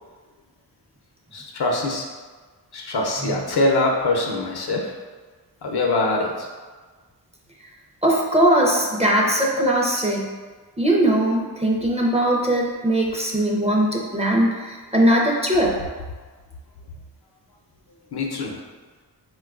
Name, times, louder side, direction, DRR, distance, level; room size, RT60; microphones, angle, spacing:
voice 1, 1.3-2.0 2.7-4.9 5.6-6.5 18.1-18.6, left 2 dB, 70° left, 0 dB, 0.6 m, -23 dB
voice 2, 8.0-10.3 10.8-15.8, right 1 dB, 15° right, -2 dB, 0.5 m, -20 dB
4.3 x 2.3 x 2.3 m, 1.4 s
wide cardioid pair, 65°, 41 cm